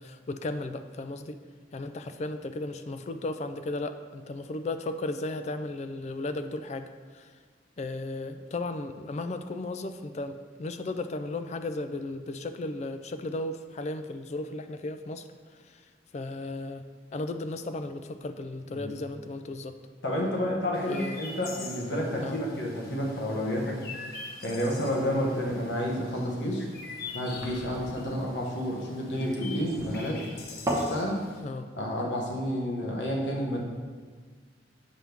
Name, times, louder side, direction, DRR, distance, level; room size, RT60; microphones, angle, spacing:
voice 1, 0.0-1.4 1.7-7.3 7.8-15.3 15.6-15.9 16.1-16.8 17.1-19.8 20.9-21.2 22.2-22.4 31.4-31.7, left 2 dB, 35° left, 9 dB, 0.3 m, -35 dB
voice 2, 20.0-23.8 24.4-26.7 27.1-30.2 30.7-31.2 31.7-33.6, equal, 75° left, -1 dB, 1.3 m, -30 dB
Chirp tweet, 20.7-31.4, left 4 dB, 55° left, 0.8 m, -44 dB
sound 1, 24.5-31.0, right 1 dB, 20° right, 0.9 m, -38 dB
7.5 x 3.5 x 6.0 m, 1.6 s
head